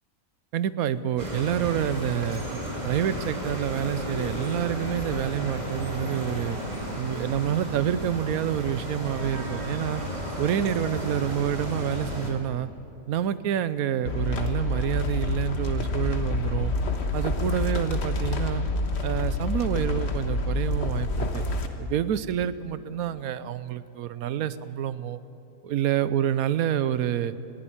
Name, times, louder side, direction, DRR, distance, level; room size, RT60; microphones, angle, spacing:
voice 1, 0.5-2.4 2.8-6.6 7.0-10.0 10.4-12.7 13.1-16.7 17.1-18.6 19.0-21.4 21.8-25.2 25.6-27.3, right 10 dB, 80° right, 15 dB, 1.1 m, -28 dB
sound 1, 1.2-12.3, equal, 30° right, 2.8 m, -33 dB
sound 2, 14.1-21.7, left 2 dB, 50° left, 1.5 m, -27 dB
20.5 x 15.5 x 8.7 m, 2.7 s
omnidirectional pair, 1.5 m